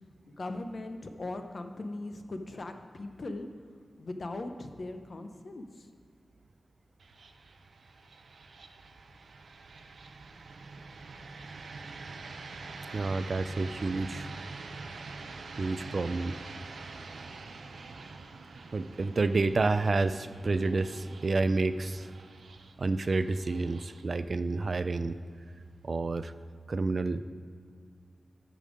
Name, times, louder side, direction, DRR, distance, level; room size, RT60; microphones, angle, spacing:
voice 1, 0.3-3.5 4.0-5.9, left 2 dB, 50° left, 6 dB, 0.7 m, -39 dB
sound 1, 7.0-26.0, right 3 dB, 85° right, 0.6 m, -46 dB
voice 2, 12.9-14.3 15.6-16.4 18.7-22.1 22.8-25.2 25.8-26.3 26.7-27.2, right 3 dB, 45° right, 12 dB, 0.3 m, -29 dB
13.0 x 5.3 x 4.9 m, 2.1 s
wide cardioid pair, 140°, 0 cm